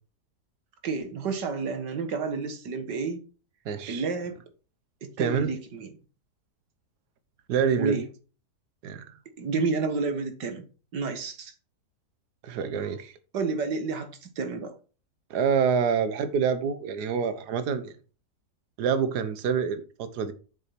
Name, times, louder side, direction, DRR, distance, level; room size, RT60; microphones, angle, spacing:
voice 1, 0.8-3.2 3.9-4.4 5.0-5.9 7.8-8.1 9.4-10.6 10.9-11.5 13.3-14.7, right 4 dB, 90° right, 2.1 m, -30 dB
voice 2, 3.6-4.1 5.2-5.5 7.5-8.0 8.8-9.0 12.4-13.1 15.3-17.9 18.8-20.3, right 6 dB, 70° right, 1.5 m, -26 dB
7.5 x 6.4 x 5.8 m
omnidirectional pair, 1.8 m